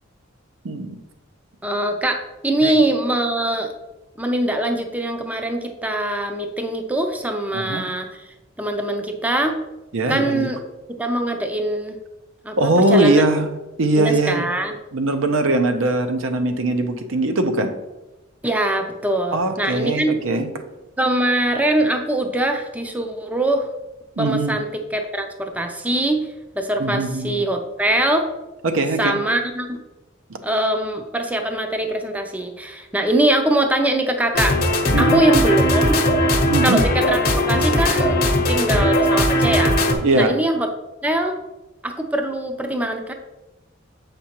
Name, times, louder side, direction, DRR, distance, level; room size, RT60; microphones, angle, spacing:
voice 1, 0.6-1.0 2.6-2.8 7.5-7.8 9.9-10.5 12.6-13.5 13.8-14.4 14.9-17.7 19.3-20.5 24.2-24.6 26.8-27.4 28.6-29.2 30.3-30.4 34.9-35.4 36.5-36.8 40.0-40.4, right 2 dB, 75° right, 7 dB, 0.6 m, -20 dB
voice 2, 1.6-3.7 4.2-8.2 8.6-9.6 10.1-10.6 10.9-12.0 12.4-12.6 12.9-13.2 13.9-14.7 18.4-20.1 21.0-23.7 24.2-24.7 24.9-26.3 26.6-28.3 29.0-29.8 30.4-34.6 35.0-35.9 36.6-38.2 38.5-39.7 40.1-40.7 41.0-41.4 41.8-43.1, right 1 dB, 10° right, 4 dB, 0.5 m, -22 dB
sound 1, 34.3-39.9, equal, 50° left, 0.9 m, -18 dB
7.2 x 5.1 x 2.9 m, 1.0 s
head